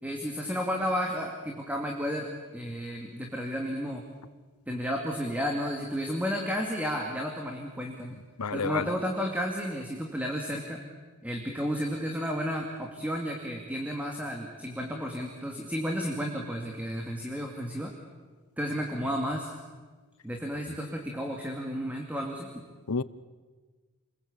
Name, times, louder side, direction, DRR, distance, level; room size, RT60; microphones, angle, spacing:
voice 1, 0.0-4.0 4.7-8.2 8.5-10.8 11.2-17.9 18.6-19.5 20.2-22.6, equal, 5° right, 1 dB, 2.5 m, -32 dB
voice 2, 8.1-8.9 22.9-23.0, left 4 dB, 80° left, 17 dB, 0.9 m, -31 dB
29.5 x 21.5 x 8.7 m, 1.4 s
head